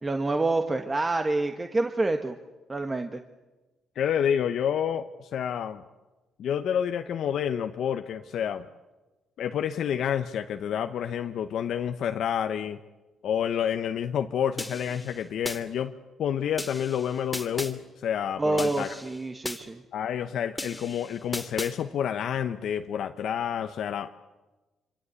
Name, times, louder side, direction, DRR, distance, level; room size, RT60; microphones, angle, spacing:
voice 1, 0.0-2.4 2.7-3.2 18.4-19.8, right 2 dB, 25° right, 6 dB, 1.4 m, -27 dB
voice 2, 4.0-5.8 6.4-8.7 9.4-12.8 13.2-15.9 16.2-18.9 19.9-24.1, left 9 dB, 70° left, 7 dB, 0.9 m, -29 dB
sound 1, 14.6-15.6 16.6-17.7 18.6-19.6 20.6-21.7, left 2 dB, 10° left, 2.5 m, -36 dB
27.0 x 25.0 x 8.3 m, 1.1 s
cardioid pair, 90°, 0 cm